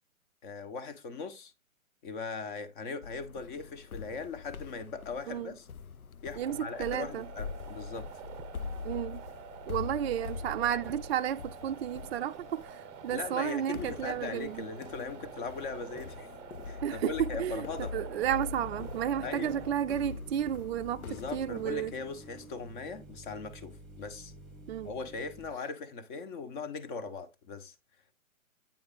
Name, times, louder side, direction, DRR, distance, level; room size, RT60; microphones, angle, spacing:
voice 1, 0.4-1.5 2.0-5.7 6.2-8.1 13.1-16.3 16.6-18.0 19.2-19.5 21.0-24.3 24.8-27.7, left 4 dB, 35° left, 1.4 m, -39 dB
sound 1, 3.0-22.5, left 5 dB, 85° left, 0.8 m, -44 dB
sound 2, 6.4-19.7, right 7 dB, 15° right, 0.7 m, -47 dB
voice 2, 6.4-7.3 8.8-9.2 9.7-14.6 16.8-17.7 17.9-21.9 24.7-24.9, right 10 dB, 50° right, 0.4 m, -32 dB
sound 3, 18.4-25.5, right 2 dB, ahead, 1.6 m, -50 dB
8.9 x 4.6 x 3.9 m
figure-of-eight pair, 130°, 42 cm